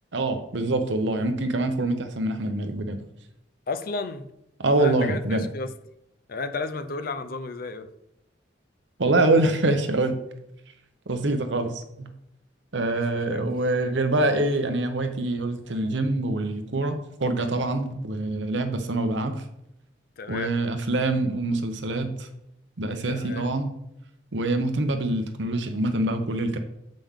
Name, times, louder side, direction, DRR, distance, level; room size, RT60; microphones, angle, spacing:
voice 1, 0.1-3.0 4.6-5.5 9.0-10.1 11.1-12.1 12.7-19.3 20.3-22.3 22.8-23.7 24.3-26.6, right 2 dB, 75° right, 0.8 m, -25 dB
voice 2, 3.7-4.3 4.8-5.7 6.3-7.9 12.8-13.4 20.2-20.5 23.1-23.5, left 3 dB, 50° left, 0.5 m, -33 dB
7.3 x 5.2 x 3.6 m
head